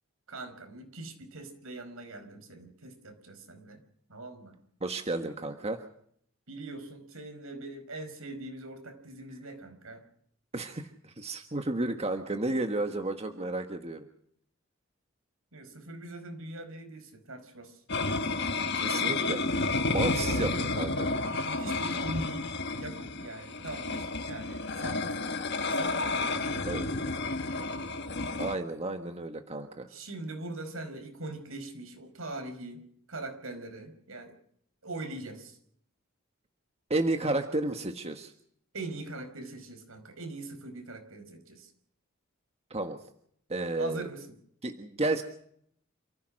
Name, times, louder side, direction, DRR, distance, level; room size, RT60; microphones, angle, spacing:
voice 1, 0.3-3.8 4.1-4.6 6.5-10.0 15.5-17.8 20.1-20.7 21.4-22.5 22.8-25.3 25.7-27.2 29.9-32.8 33.1-34.4 34.8-35.6 38.7-41.7 43.8-44.3, right 2 dB, 80° right, 7 dB, 4.8 m, -42 dB
voice 2, 4.8-5.8 10.5-14.1 18.7-19.4 19.9-21.1 26.6-26.9 28.4-29.9 36.9-38.3 42.7-43.0 43.5-44.1 44.6-45.2, right 2 dB, 30° right, 6 dB, 1.4 m, -32 dB
sound 1, 17.9-28.6, left 3 dB, 55° left, 1.6 m, -31 dB
28.5 x 15.5 x 6.4 m, 0.66 s
head